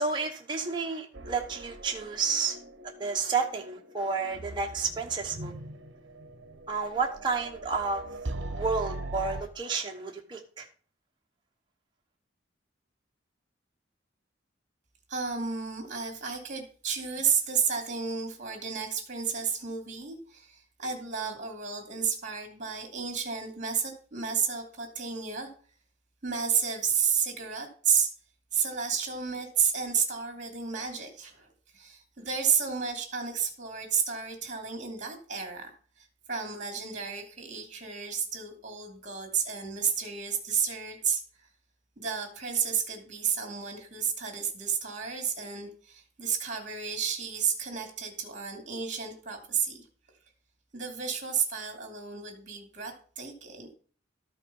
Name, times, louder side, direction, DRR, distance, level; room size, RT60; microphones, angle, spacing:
voice 1, 0.0-2.6 3.0-5.5 6.7-8.0 8.5-10.7, right 4 dB, 25° right, 0 dB, 1.1 m, -31 dB
sound 1, 1.1-9.4, right 2 dB, 65° right, 0.9 m, -41 dB
voice 2, 15.1-25.5 26.2-28.1 28.5-31.5 31.7-35.7 36.3-41.2 42.0-49.8 50.7-53.7, right 6 dB, 40° right, 2 dB, 2.7 m, -31 dB
13.0 x 5.8 x 5.5 m, 0.42 s
head